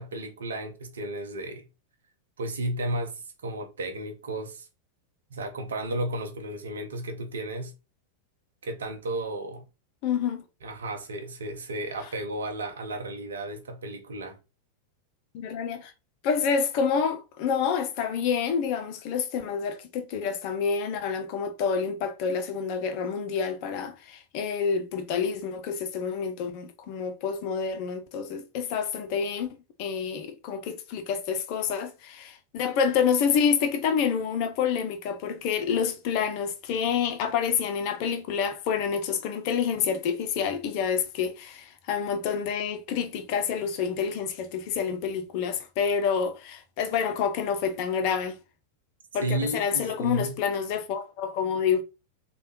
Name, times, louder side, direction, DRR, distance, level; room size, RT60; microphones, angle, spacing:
voice 1, 0.0-1.7 2.4-4.7 5.3-7.7 8.6-9.6 10.6-14.4 49.2-50.4, right 1 dB, 65° right, 0.6 m, -33 dB
voice 2, 10.0-10.4 15.3-15.9 16.2-29.5 29.8-48.4 49.1-51.8, left 6 dB, 45° left, 0.5 m, -28 dB
3.2 x 2.2 x 2.8 m
figure-of-eight pair, 90°, 0 cm